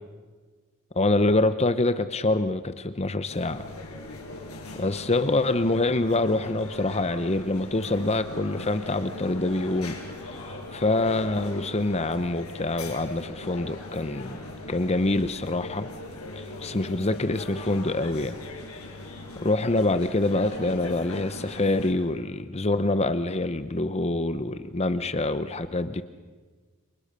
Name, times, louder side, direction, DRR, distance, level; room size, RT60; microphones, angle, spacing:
voice 1, 0.9-3.7 4.8-10.3 10.7-14.4 14.7-15.9 16.4-18.4 19.4-26.0, left 2 dB, 30° left, 11 dB, 0.9 m, -25 dB
sound 1, 3.3-21.9, left 2 dB, 75° left, 7.0 m, -40 dB
30.0 x 28.5 x 6.8 m, 1.4 s
head